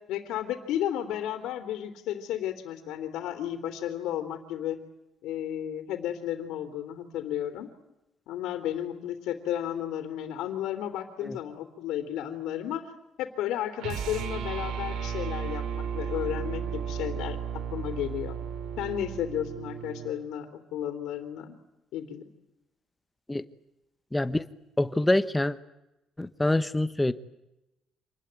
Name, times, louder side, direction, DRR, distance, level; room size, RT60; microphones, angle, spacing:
voice 1, 0.1-4.8 5.2-7.7 8.3-12.9 13.2-17.4 17.7-18.4 18.8-21.6 21.9-22.2, left 11 dB, 85° left, 6 dB, 3.2 m, -33 dB
sound 1, 13.8-20.2, right 7 dB, 70° right, 2.4 m, -34 dB
voice 2, 24.1-24.4 24.8-25.6 26.2-27.1, left 1 dB, 5° left, 12 dB, 1.1 m, -25 dB
27.0 x 20.5 x 9.4 m, 0.93 s
cardioid pair, 165°, 0 cm